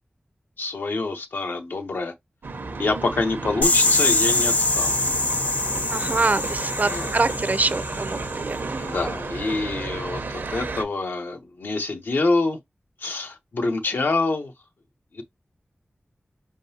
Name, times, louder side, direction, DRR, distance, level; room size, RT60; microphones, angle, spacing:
voice 1, 0.6-2.1 2.8-5.0 6.9-7.2 8.7-12.6 13.0-14.5 15.1-15.2, left 3 dB, 85° left, 0.8 m, -26 dB
sound 1, 2.4-10.8, right 3 dB, 85° right, 0.8 m, -32 dB
sound 2, 3.6-8.4, left 2 dB, 50° left, 0.8 m, -24 dB
voice 2, 5.9-8.8, right 3 dB, 50° right, 0.5 m, -25 dB
4.5 x 3.7 x 2.7 m
wide cardioid pair, 55°, 4 cm